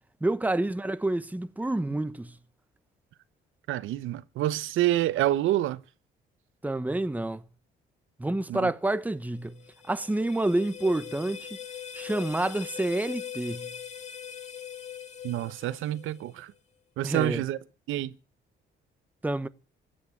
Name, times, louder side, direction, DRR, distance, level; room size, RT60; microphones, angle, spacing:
voice 1, 0.2-2.4 6.6-7.4 8.2-9.6 9.9-11.6 11.9-13.7 17.0-17.4 19.2-19.5, right 2 dB, 10° right, 0.9 m, -28 dB
voice 2, 3.7-5.8 8.5-8.7 15.2-16.5 17.0-17.6 17.9-18.1, right 14 dB, 85° right, 0.9 m, -27 dB
sound 1, 9.3-16.4, left 8 dB, 35° left, 2.4 m, -41 dB
14.5 x 8.8 x 8.4 m
cardioid pair, 90°, 20 cm